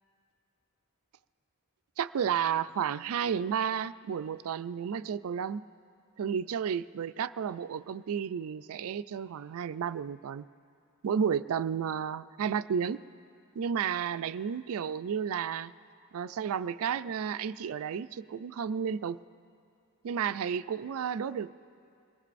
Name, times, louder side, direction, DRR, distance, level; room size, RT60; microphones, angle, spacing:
voice 1, 2.0-5.6 6.2-10.5 11.0-13.0 13.6-15.7 16.1-19.2 20.0-21.5, right 7 dB, 70° right, 14 dB, 0.4 m, -32 dB
25.0 x 19.0 x 2.6 m, 2.4 s
head